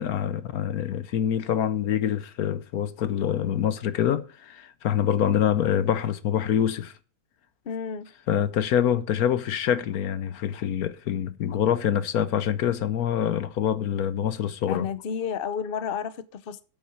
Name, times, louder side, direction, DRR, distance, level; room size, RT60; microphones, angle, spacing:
voice 1, 0.0-6.9 8.3-14.9, left 9 dB, 75° left, 1.2 m, -25 dB
voice 2, 7.6-8.1 14.7-16.6, left 7 dB, 45° left, 0.9 m, -31 dB
8.7 x 7.4 x 6.9 m
omnidirectional pair, 1.6 m